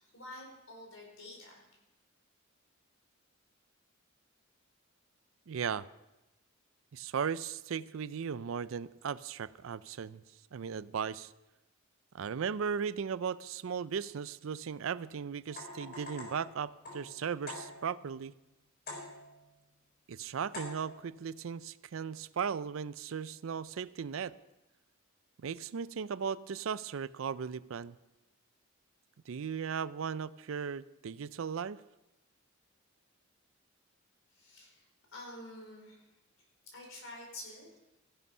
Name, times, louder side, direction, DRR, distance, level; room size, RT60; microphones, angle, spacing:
voice 1, 0.0-1.6 34.3-34.8 35.1-36.0 36.7-37.7, left 1 dB, 70° left, 0 dB, 5.0 m, -48 dB
voice 2, 5.5-5.9 6.9-10.2 10.5-11.3 12.1-18.3 20.1-24.3 25.4-28.0 29.3-31.8, right 6 dB, 70° right, 17 dB, 0.4 m, -37 dB
sound 1, 15.5-18.1 18.9-19.5 20.5-21.1, left 2 dB, 50° left, 4.1 m, -45 dB
15.5 x 11.0 x 5.5 m, 0.98 s
head